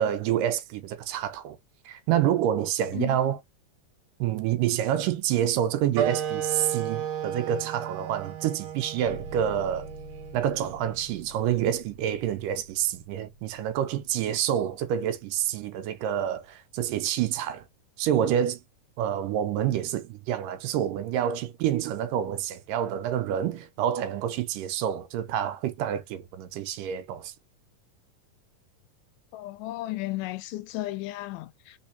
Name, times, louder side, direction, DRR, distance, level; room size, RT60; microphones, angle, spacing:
voice 1, 0.0-1.6 1.9-3.4 4.2-9.9 10.3-17.6 18.0-18.6 19.0-27.3, right 10 dB, 85° right, 2.2 m, -28 dB
sound 1, 5.9-11.1, right 9 dB, 65° right, 1.8 m, -33 dB
sound 2, 9.0-16.8, equal, 45° left, 1.5 m, -48 dB
voice 2, 29.3-31.8, left 17 dB, 80° left, 2.0 m, -34 dB
4.4 x 4.2 x 2.7 m
omnidirectional pair, 3.9 m